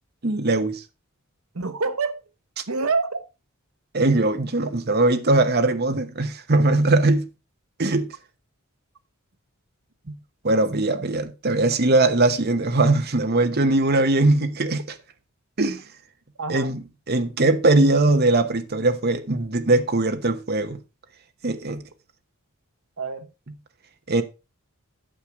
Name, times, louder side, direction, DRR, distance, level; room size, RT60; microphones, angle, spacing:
voice 1, 0.2-0.8 3.9-7.3 7.8-8.1 10.1-10.2 10.4-15.0 15.6-15.8 16.5-16.8 17.1-20.8 21.4-21.8 24.1-24.2, right 2 dB, 45° right, 1.0 m, -20 dB
voice 2, 1.5-2.2 2.7-3.2 16.4-16.7 21.7-21.8 23.0-23.3, right 4 dB, 75° right, 1.1 m, -26 dB
9.0 x 6.6 x 4.7 m
head